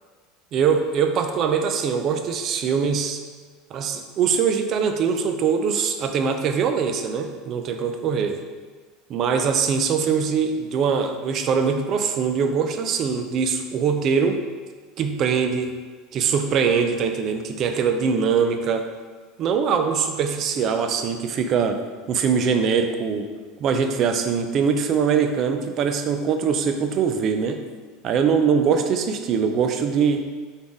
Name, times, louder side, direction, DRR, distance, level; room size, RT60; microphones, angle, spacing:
voice 1, 0.5-3.2 3.7-8.4 9.1-14.4 15.0-15.7 16.1-18.9 19.4-21.8 22.1-23.3 23.6-27.6 28.0-30.2, right 6 dB, 40° right, 7 dB, 0.4 m, -22 dB
4.1 x 3.5 x 3.5 m, 1.4 s
supercardioid pair, 135°, 0 cm